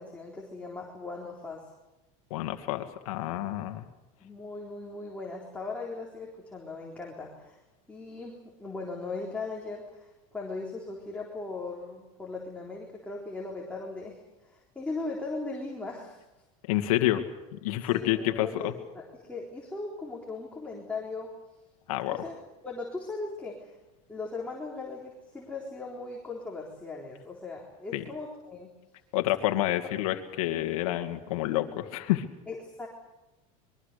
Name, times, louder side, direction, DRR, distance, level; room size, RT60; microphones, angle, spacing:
voice 1, 0.0-1.7 4.2-7.6 7.9-16.2 17.9-21.3 22.1-23.7 24.1-28.7 32.5-32.9, left 3 dB, 5° left, -3 dB, 3.9 m, -38 dB
voice 2, 2.3-3.9 16.7-17.2 17.5-18.7 21.9-22.2 27.9-28.0 29.1-32.2, left 15 dB, 85° left, 6 dB, 2.3 m, -28 dB
25.5 x 22.5 x 6.8 m, 1.0 s
supercardioid pair, 145°, 18 cm